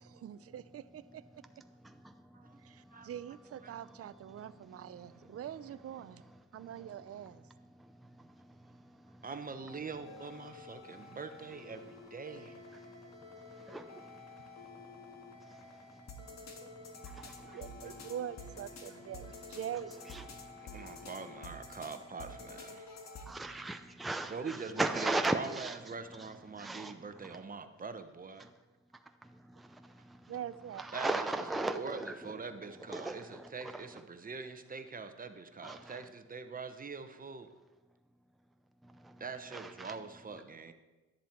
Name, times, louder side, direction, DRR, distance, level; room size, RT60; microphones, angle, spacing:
voice 1, 0.0-1.4 3.1-6.2 6.5-7.4 17.2-19.9 30.3-30.9, right 10 dB, 50° right, 16 dB, 0.6 m, -44 dB
voice 2, 9.2-12.6 17.5-17.6 20.6-22.9 24.3-28.5 30.9-37.5 39.2-40.7, right 5 dB, 30° right, 9 dB, 1.0 m, -43 dB
sound 1, 9.5-23.3, left 3 dB, 60° left, 1.8 m, -50 dB
voice 3, 13.5-14.2 15.5-15.6 16.6-16.7 17.0-17.6 20.1-20.9 23.3-25.7 26.6-26.9 29.5-30.2 30.8-32.1 32.9-33.5 35.6-36.0 39.0-39.2 39.5-39.9, right 2 dB, ahead, 7 dB, 0.6 m, -37 dB
11.5 x 10.5 x 4.5 m, 1.2 s
cardioid pair, 90°, 30 cm